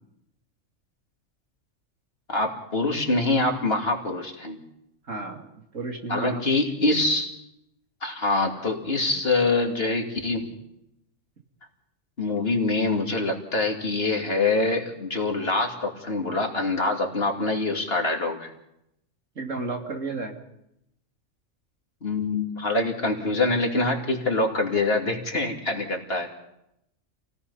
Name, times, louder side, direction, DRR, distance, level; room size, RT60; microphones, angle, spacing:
voice 1, 2.3-4.6 6.1-7.3 8.0-10.5 12.2-18.5 22.0-26.3, left 2 dB, 50° left, 2 dB, 2.9 m, -25 dB
voice 2, 5.1-6.4 19.4-20.4, right 3 dB, 75° right, 2 dB, 3.0 m, -33 dB
28.0 x 18.0 x 5.6 m, 0.82 s
omnidirectional pair, 1.3 m